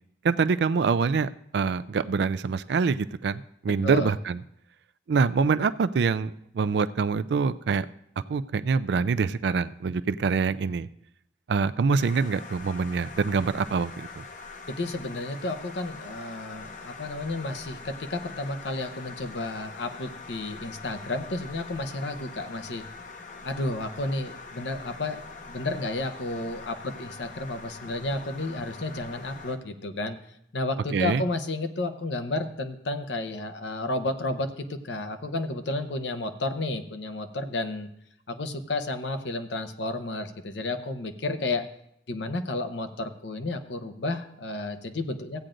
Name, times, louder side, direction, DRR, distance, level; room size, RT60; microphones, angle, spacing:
voice 1, 0.2-4.4 5.1-7.9 8.3-10.9 11.5-14.1 30.9-31.2, right 5 dB, 65° right, 14 dB, 0.4 m, -25 dB
voice 2, 3.7-4.1 14.7-22.8 23.4-25.2 25.5-30.2 30.5-37.9 38.3-41.7 42.1-45.4, left 2 dB, 75° left, 8 dB, 0.8 m, -32 dB
sound 1, 12.0-29.6, left 4 dB, 45° left, 0.7 m, -43 dB
15.5 x 8.8 x 2.5 m, 0.75 s
head